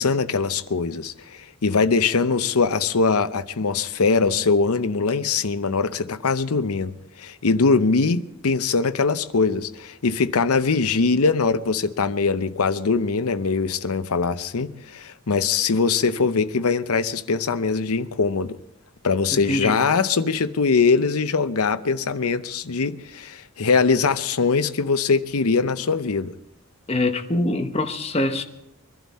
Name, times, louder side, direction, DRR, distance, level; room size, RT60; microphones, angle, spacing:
voice 1, 0.0-18.6 19.0-26.3, left 4 dB, 80° left, 0.7 m, -22 dB
voice 2, 19.4-19.8 26.9-28.4, left 2 dB, 25° left, 1.0 m, -24 dB
23.5 x 12.0 x 4.2 m
head